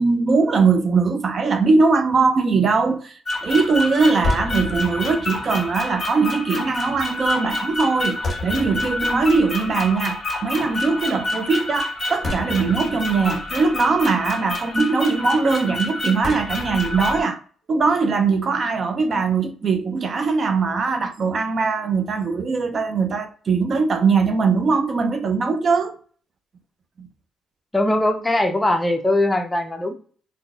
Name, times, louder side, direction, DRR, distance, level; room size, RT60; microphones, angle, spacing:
voice 1, 0.0-17.4 17.7-25.9 27.0-27.1, right 4 dB, 45° right, 0.5 m, -21 dB
sound 1, 3.3-17.2, left 2 dB, 30° left, 1.3 m, -27 dB
voice 2, 27.7-29.9, left 1 dB, 15° left, 0.6 m, -21 dB
3.8 x 2.6 x 2.4 m
cardioid pair, 90°, 0 cm